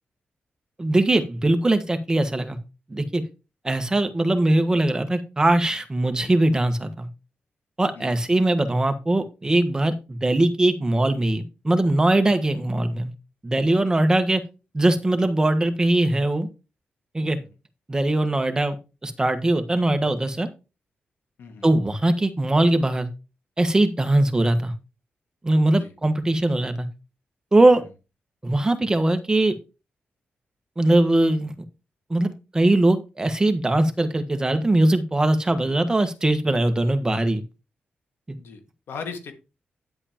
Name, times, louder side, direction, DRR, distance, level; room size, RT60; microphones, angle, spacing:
voice 1, 0.8-2.6 2.9-3.2 3.6-7.1 7.8-13.1 13.4-14.4 14.7-16.5 17.1-17.4 17.9-18.7 19.0-20.5 21.6-23.1 23.6-24.7 25.4-26.9 27.5-27.8 28.4-29.6 30.8-31.5 32.1-37.4, right 1 dB, 20° right, 8 dB, 1.4 m, -21 dB
voice 2, 38.9-39.3, left 5 dB, 90° left, 5 dB, 1.9 m, -38 dB
10.0 x 7.9 x 3.0 m, 0.29 s
cardioid pair, 105°, 4 cm